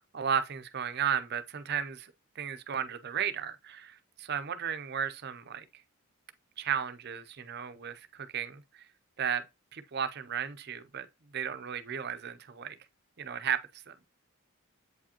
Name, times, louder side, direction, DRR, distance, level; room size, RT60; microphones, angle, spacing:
voice 1, 0.1-5.7 6.6-8.8 9.2-9.4 9.7-11.1 11.3-12.8 13.2-13.6 13.9-14.0, right 8 dB, 50° right, 0.5 m, -34 dB
8.1 x 4.9 x 2.8 m
head